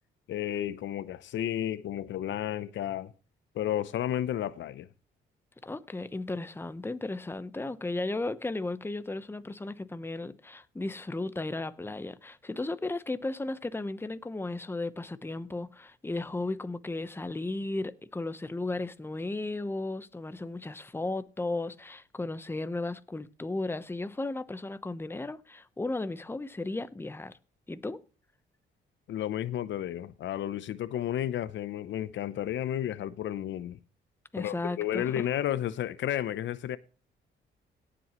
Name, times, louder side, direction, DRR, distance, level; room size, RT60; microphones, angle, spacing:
voice 1, 0.3-3.1 3.5-4.9 29.1-33.8 34.4-36.8, left 11 dB, 70° left, 0.7 m, -32 dB
voice 2, 5.6-27.4 27.7-28.0 34.3-35.1, left 2 dB, 10° left, 0.9 m, -35 dB
17.5 x 7.7 x 3.0 m
cardioid pair, 90°, 20 cm